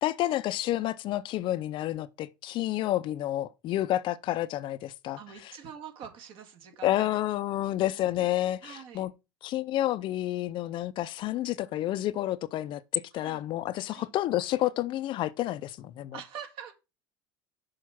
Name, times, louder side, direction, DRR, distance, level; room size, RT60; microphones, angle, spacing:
voice 1, 0.0-5.5 6.8-9.1 9.4-16.2, left 14 dB, 50° left, 0.5 m, -30 dB
voice 2, 5.2-7.2 8.6-9.1 13.1-13.4 13.9-14.1 16.1-16.7, right 8 dB, 55° right, 2.0 m, -44 dB
6.4 x 4.5 x 5.8 m
hypercardioid pair, 90°, 11 cm